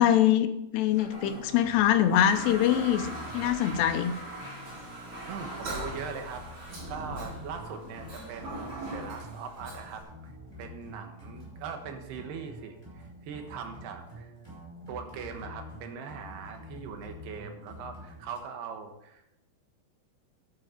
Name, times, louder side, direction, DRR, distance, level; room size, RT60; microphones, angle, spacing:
voice 1, 0.0-4.1, left 11 dB, 90° left, 9 dB, 2.8 m, -24 dB
Toilet flush, 0.9-10.0, right 1 dB, 45° right, 5.7 m, -41 dB
sound 1, 1.2-18.4, equal, 5° right, 4.6 m, -47 dB
voice 2, 5.3-6.5 6.9-10.3 10.6-14.3 14.9-19.2, right 6 dB, 75° right, 5 dB, 3.2 m, -41 dB
12.0 x 8.9 x 5.2 m, 0.84 s
omnidirectional pair, 4.9 m